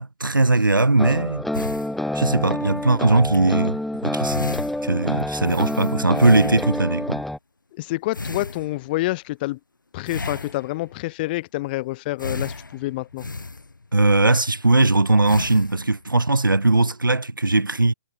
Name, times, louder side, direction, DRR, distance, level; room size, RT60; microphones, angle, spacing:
voice 1, 0.0-1.5 2.1-4.4 4.8-7.2 13.9-17.9, right 2 dB, 85° right, 0.7 m, -19 dB
sound 1, 1.0-7.4, left 1 dB, ahead, 1.4 m, -27 dB
sound 2, 1.5-2.6 3.2-3.4 3.9-4.0 4.2-7.0 8.1-9.1 10.1-11.0 12.2-14.1 14.6-14.8 15.3-16.0, left 3 dB, 75° left, 3.3 m, -34 dB
voice 2, 7.8-9.6 9.9-13.3, left 19 dB, 30° left, 1.0 m, -27 dB
figure-of-eight pair, 130°, 11 cm